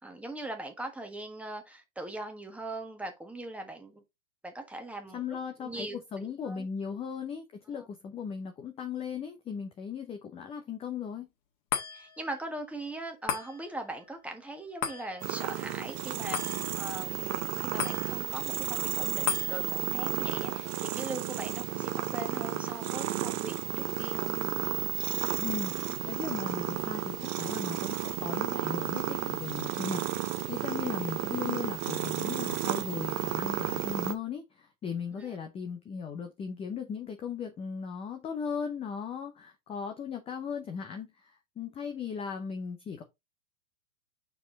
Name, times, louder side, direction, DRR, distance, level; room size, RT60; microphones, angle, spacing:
voice 1, 0.0-4.0 4.4-5.2 5.6-6.0 6.5-6.7 7.7-7.9 11.9-24.4 35.1-35.4, right 2 dB, 5° right, 1.4 m, -40 dB
voice 2, 5.1-11.3 25.4-43.0, left 7 dB, 15° left, 0.7 m, -37 dB
sound 1, 11.7-24.3 24.7-24.8, left 8 dB, 45° left, 1.9 m, -40 dB
sound 2, 15.2-34.2, right 14 dB, 30° right, 0.7 m, -33 dB
5.6 x 4.7 x 3.9 m
hypercardioid pair, 125°, 42 cm